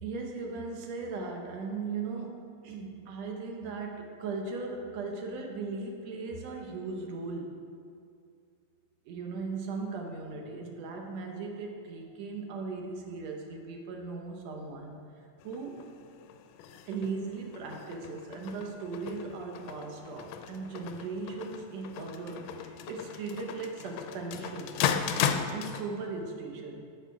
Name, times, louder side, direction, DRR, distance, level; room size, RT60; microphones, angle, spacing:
voice 1, 0.0-7.6 9.1-15.0 15.4-15.8 16.9-24.8 25.5-26.8, right 4 dB, 70° right, 1 dB, 1.8 m, -38 dB
sound 1, 15.4-25.8, left 8 dB, 90° left, 2.2 m, -36 dB
14.5 x 4.8 x 4.6 m, 2.3 s
omnidirectional pair, 3.7 m